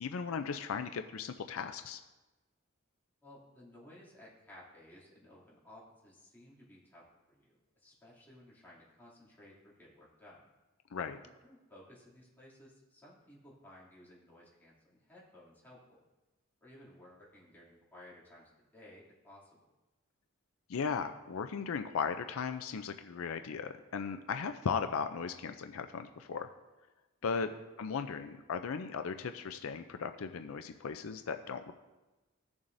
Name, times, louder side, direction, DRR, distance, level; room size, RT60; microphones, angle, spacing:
voice 1, 0.0-2.0 10.9-11.2 20.7-26.5 27.2-27.5 27.8-31.7, left 5 dB, 75° left, 8 dB, 0.5 m, -37 dB
voice 2, 3.2-10.5 11.2-16.0 16.6-19.6 27.3-27.5, left 1 dB, 10° left, -7 dB, 2.6 m, -57 dB
15.5 x 7.1 x 2.6 m, 1.1 s
head